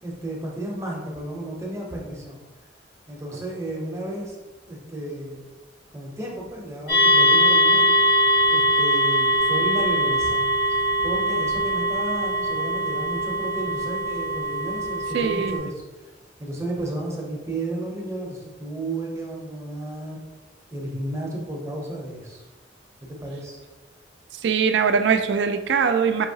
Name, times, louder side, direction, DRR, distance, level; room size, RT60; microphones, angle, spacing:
voice 1, 0.0-2.4 3.1-4.4 4.7-5.4 5.9-8.0 8.5-15.7 16.0-16.1 16.4-20.2 20.7-22.5 23.0-23.6, right 1 dB, 15° right, -1 dB, 0.7 m, -33 dB
sound 1, 6.9-15.6, equal, 75° left, 1.2 m, -21 dB
voice 2, 15.1-15.6 24.4-26.3, right 6 dB, 65° right, 8 dB, 0.3 m, -21 dB
5.3 x 2.8 x 2.7 m, 1.2 s
head